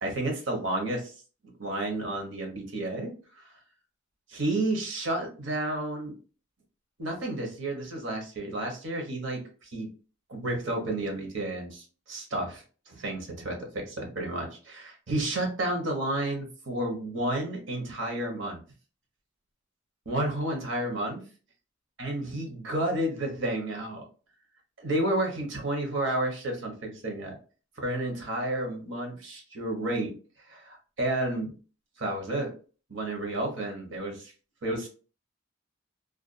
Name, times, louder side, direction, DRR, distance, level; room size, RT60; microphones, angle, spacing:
voice 1, 0.0-1.1 1.6-3.4 4.3-6.1 7.0-9.9 10.3-18.6 20.1-21.2 22.0-24.1 24.8-27.4 27.8-30.1 30.5-31.5 32.0-32.5 32.9-34.3 34.6-34.9, right 1 dB, 65° right, 2 dB, 0.8 m, -31 dB
2.4 x 2.2 x 2.5 m, 0.37 s
head